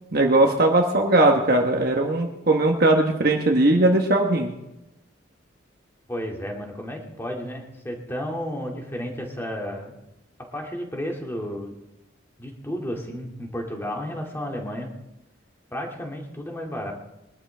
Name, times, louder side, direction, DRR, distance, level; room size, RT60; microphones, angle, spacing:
voice 1, 0.1-4.5, right 2 dB, 45° right, 2 dB, 1.2 m, -19 dB
voice 2, 6.1-10.0 10.5-11.7 12.4-14.9 15.7-16.9, equal, 10° left, 0 dB, 2.3 m, -32 dB
22.5 x 12.5 x 3.4 m, 0.92 s
head